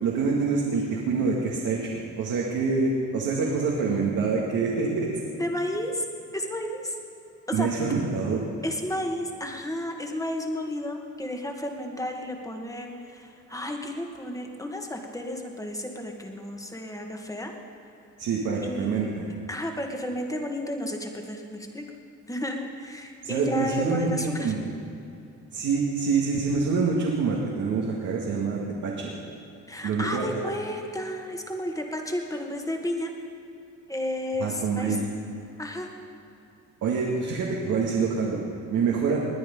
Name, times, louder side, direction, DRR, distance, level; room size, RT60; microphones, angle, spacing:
voice 1, 0.0-5.1 7.5-8.4 18.2-19.3 23.2-24.7 25.5-29.1 29.8-30.3 34.4-35.0 36.8-39.2, right 4 dB, 80° right, -3 dB, 2.2 m, -26 dB
voice 2, 5.3-6.0 6.3-6.9 7.5-7.7 8.6-17.5 18.6-19.1 19.5-21.8 22.3-24.5 29.7-33.1 33.9-35.0 35.6-35.9, left 1 dB, 10° left, 3 dB, 2.0 m, -32 dB
20.0 x 9.8 x 5.4 m, 2.8 s
cardioid pair, 90°, 30 cm